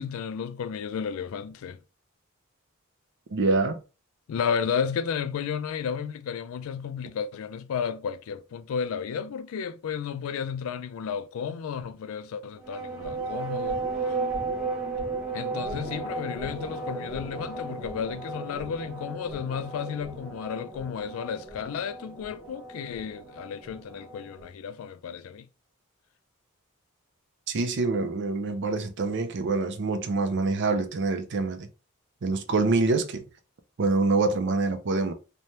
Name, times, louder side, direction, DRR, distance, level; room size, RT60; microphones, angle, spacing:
voice 1, 0.0-1.8 4.3-13.8 15.3-25.5, left 7 dB, 70° left, 0.3 m, -33 dB
voice 2, 3.3-3.8 27.5-31.7 32.2-33.2 33.8-35.1, right 3 dB, 55° right, 0.5 m, -25 dB
sound 1, 12.6-24.5, right 3 dB, ahead, 0.8 m, -35 dB
3.2 x 2.2 x 2.7 m
head